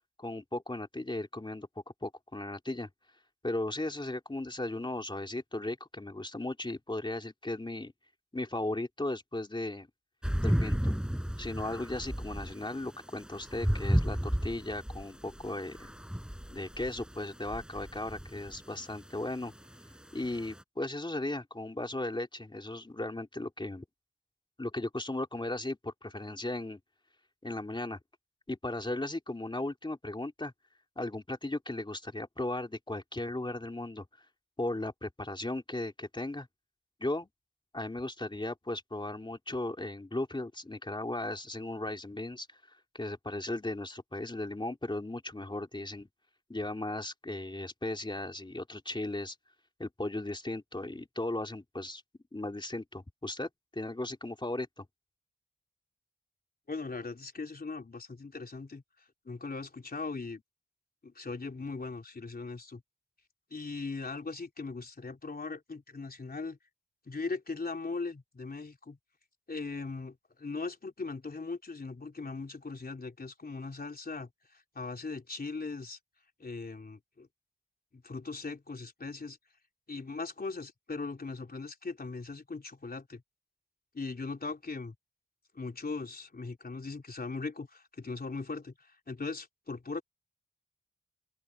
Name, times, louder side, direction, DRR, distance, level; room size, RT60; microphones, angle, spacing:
voice 1, 0.2-1.7 2.0-2.9 3.4-7.9 8.3-9.9 10.4-10.9 11.4-15.8 16.5-19.5 20.1-23.8 24.6-26.8 27.4-28.0 28.5-30.5 31.0-34.0 34.6-36.5 37.0-37.3 37.7-42.6 42.9-46.1 46.5-49.3 49.8-52.0 52.3-54.8, left 2 dB, 25° left, 3.1 m, -36 dB
sound 1, 10.2-20.6, equal, 5° right, 7.5 m, -34 dB
voice 2, 56.7-58.8 59.3-60.4 61.0-62.8 63.5-66.6 67.1-69.0 69.5-76.0 76.4-77.3 77.9-79.4 79.9-83.2 83.9-85.0 85.5-90.0, left 3 dB, 50° left, 3.5 m, -39 dB
open air
wide cardioid pair, 70°, 20 cm